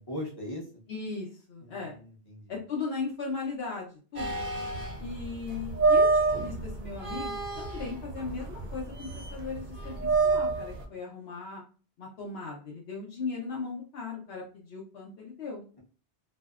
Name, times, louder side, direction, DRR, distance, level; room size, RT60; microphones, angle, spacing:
voice 1, 0.0-0.8 1.6-2.5 4.7-5.0, left 1 dB, 25° left, -3 dB, 0.7 m, -40 dB
voice 2, 0.9-2.0 2.5-4.4 5.0-11.6 12.0-15.6, left 4 dB, 70° left, -2 dB, 0.8 m, -37 dB
sound 1, 4.2-10.8, right 3 dB, 55° right, 0.6 m, -28 dB
2.6 x 2.1 x 2.3 m, 0.38 s
omnidirectional pair, 1.1 m